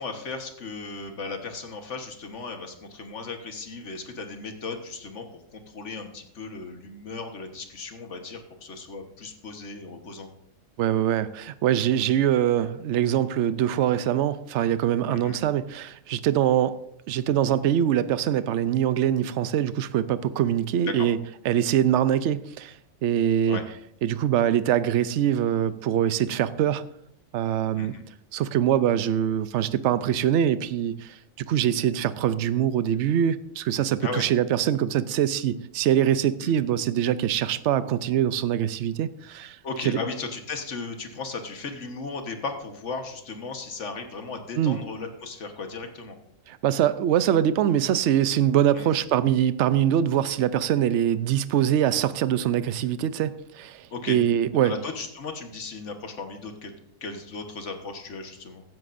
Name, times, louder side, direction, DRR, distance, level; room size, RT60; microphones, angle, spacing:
voice 1, 0.0-5.2 5.5-10.3 15.1-15.4 20.9-21.1 23.5-23.6 27.7-28.0 34.0-34.2 36.4-36.6 39.6-46.2 48.7-49.0 53.9-54.2 54.6-56.7 57.0-58.6, left 4 dB, 60° left, 5 dB, 1.6 m, -36 dB
voice 2, 10.8-16.8 17.1-21.2 21.4-22.7 23.0-23.6 24.0-26.8 27.3-27.9 28.3-31.2 31.5-39.6 39.8-40.0 44.6-44.8 46.5-54.7, right 10 dB, 65° right, 14 dB, 0.9 m, -23 dB
16.0 x 12.5 x 2.6 m, 0.74 s
omnidirectional pair, 1.4 m